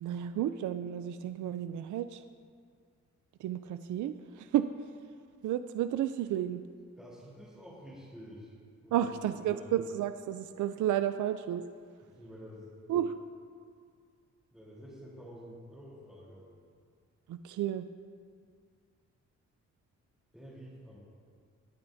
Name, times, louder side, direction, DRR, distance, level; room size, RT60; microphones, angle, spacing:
voice 1, 0.0-2.2 3.4-4.7 5.4-6.6 8.9-11.6 12.9-13.2 17.3-17.9, right 11 dB, 85° right, 10 dB, 0.4 m, -32 dB
voice 2, 7.0-8.5 8.8-9.7 12.0-12.7 14.5-16.5 20.3-21.0, equal, ahead, -10 dB, 3.4 m, -49 dB
21.0 x 9.1 x 2.7 m, 2.1 s
cardioid pair, 100°, 29 cm